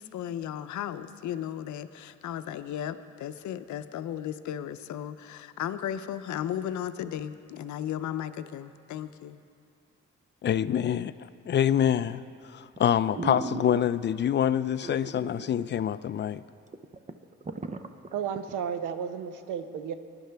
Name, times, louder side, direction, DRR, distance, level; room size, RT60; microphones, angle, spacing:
voice 1, 0.0-9.4, left 10 dB, 70° left, 0.6 m, -35 dB
voice 2, 10.4-11.1 11.5-16.4, left 9 dB, 40° left, 0.4 m, -26 dB
sound 1, 12.0-12.3 12.8-12.9 13.1-14.2 14.8-15.5 15.8-15.9 16.4-16.5 16.7-18.6 19.0-19.1, right 3 dB, 25° right, 0.7 m, -37 dB
voice 3, 18.1-19.9, right 8 dB, 85° right, 0.8 m, -33 dB
20.5 x 11.5 x 3.4 m
cardioid pair, 90°, 30 cm